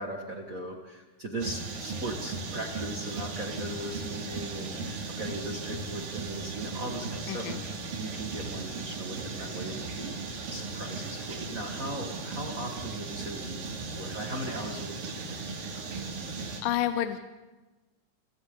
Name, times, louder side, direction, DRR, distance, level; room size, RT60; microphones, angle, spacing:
voice 1, 0.0-15.4, right 1 dB, 35° right, 2 dB, 1.4 m, -38 dB
sound 1, 1.4-16.6, right 4 dB, 85° right, 4.2 m, -37 dB
voice 2, 7.3-7.6 16.6-17.2, left 11 dB, 80° left, 9 dB, 2.4 m, -29 dB
28.0 x 26.5 x 3.8 m, 1.2 s
omnidirectional pair, 3.9 m